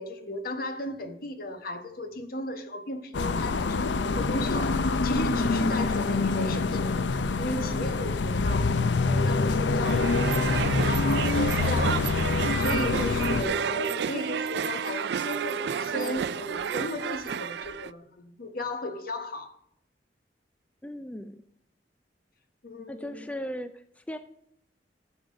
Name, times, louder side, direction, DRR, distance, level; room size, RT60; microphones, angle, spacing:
voice 1, 0.0-12.1 12.5-19.5 22.6-23.3, left 1 dB, 55° left, 1.2 m, -36 dB
sound 1, 3.1-13.4, left 3 dB, 85° left, 0.6 m, -25 dB
sound 2, 9.8-17.9, right 7 dB, 65° right, 0.4 m, -31 dB
voice 2, 13.1-13.6 20.8-21.4 22.9-24.2, left 1 dB, 10° left, 0.4 m, -37 dB
14.0 x 7.2 x 5.2 m
head